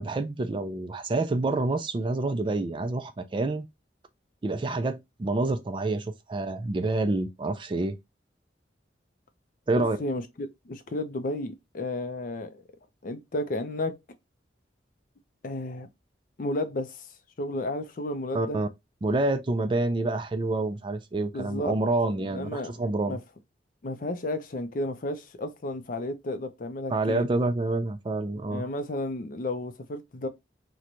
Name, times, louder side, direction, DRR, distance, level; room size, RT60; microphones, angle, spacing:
voice 1, 0.0-3.7 4.4-8.0 9.7-10.0 18.3-18.7 19.0-23.2 26.9-28.7, right 2 dB, 25° right, 0.3 m, -27 dB
voice 2, 9.7-12.6 13.0-14.0 15.4-15.9 16.4-17.1 17.4-18.6 21.3-21.7 22.2-22.7 23.1-23.2 23.8-27.2 28.5-30.3, left 1 dB, 45° left, 0.5 m, -32 dB
3.0 x 2.1 x 3.8 m
head